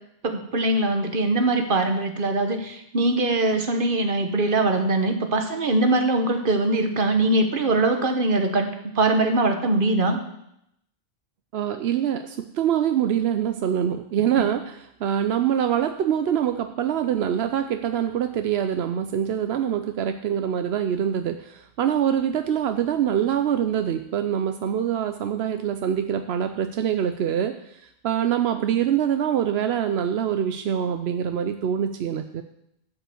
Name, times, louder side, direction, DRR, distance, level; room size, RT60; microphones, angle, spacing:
voice 1, 0.2-8.7 9.0-10.2, right 2 dB, 55° right, 5 dB, 1.4 m, -22 dB
voice 2, 11.5-32.4, right 9 dB, 85° right, 8 dB, 0.9 m, -24 dB
12.0 x 5.5 x 7.8 m, 0.78 s
omnidirectional pair, 1.1 m